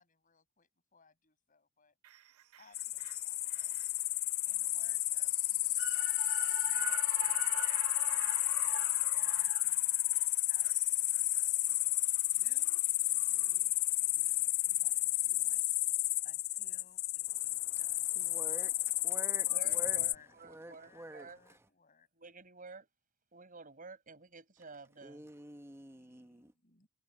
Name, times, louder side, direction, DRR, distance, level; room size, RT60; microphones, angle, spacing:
voice 1, 0.0-2.3 2.5-3.8 4.4-7.6 8.1-10.8 11.6-12.8 13.1-13.7 14.0-15.6 15.9-18.2 19.3-20.3 20.7-22.1 25.7-26.9, left 5 dB, 40° left, 7.0 m, -65 dB
sound 1, 2.0-14.4 14.7-14.8, right 9 dB, 90° right, 0.6 m, -48 dB
sound 2, 2.7-20.2, left 16 dB, 65° left, 0.8 m, -32 dB
voice 2, 17.4-20.0 20.4-21.6 25.0-26.5, right 1 dB, 10° right, 1.0 m, -49 dB
voice 3, 19.5-21.4 22.2-22.9 23.3-25.2, right 4 dB, 40° right, 5.7 m, -51 dB
head